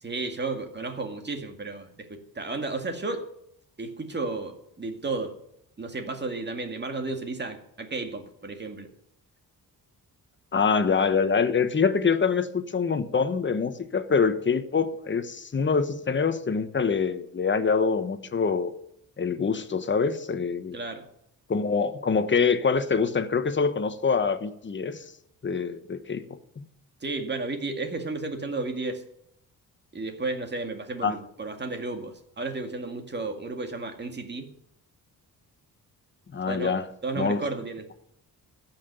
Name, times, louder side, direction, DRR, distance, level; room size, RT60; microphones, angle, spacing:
voice 1, 0.0-3.3 3.8-5.3 5.8-8.9 20.7-21.1 27.0-29.0 29.9-34.5 36.4-36.8 37.0-37.9, right 3 dB, 30° right, 5 dB, 2.1 m, -33 dB
voice 2, 10.5-18.7 19.2-20.8 21.5-25.0 25.4-26.7 31.0-31.2 36.3-36.9 37.1-37.4, left 5 dB, 30° left, 10 dB, 1.1 m, -25 dB
14.5 x 6.0 x 9.2 m, 0.75 s
cardioid pair, 110°, 36 cm